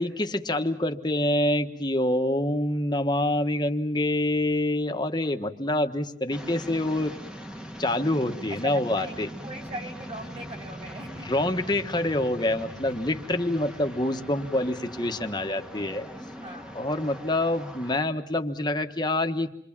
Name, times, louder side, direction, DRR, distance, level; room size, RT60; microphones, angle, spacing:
voice 1, 0.0-7.1 7.8-9.3 11.2-16.1 16.7-19.5, left 1 dB, 20° left, 6 dB, 1.3 m, -26 dB
sound 1, 6.3-18.0, equal, 5° right, 1.4 m, -41 dB
voice 2, 8.5-11.3 12.8-12.9 16.3-16.9, right 1 dB, 35° right, 3 dB, 5.3 m, -40 dB
28.0 x 23.5 x 7.4 m, 0.70 s
head